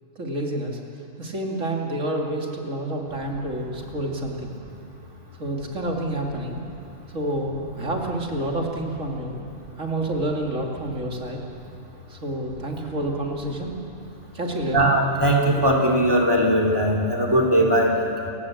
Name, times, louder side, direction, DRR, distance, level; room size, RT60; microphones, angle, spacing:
voice 1, 0.2-0.8 1.2-4.5 5.4-6.6 7.1-9.4 9.8-11.4 12.1-13.8 14.3-14.9, right 1 dB, 65° right, 0 dB, 3.1 m, -28 dB
voice 2, 14.7-18.3, right 1 dB, 15° right, 1 dB, 3.2 m, -20 dB
29.5 x 15.0 x 8.5 m, 2.6 s
omnidirectional pair, 1.4 m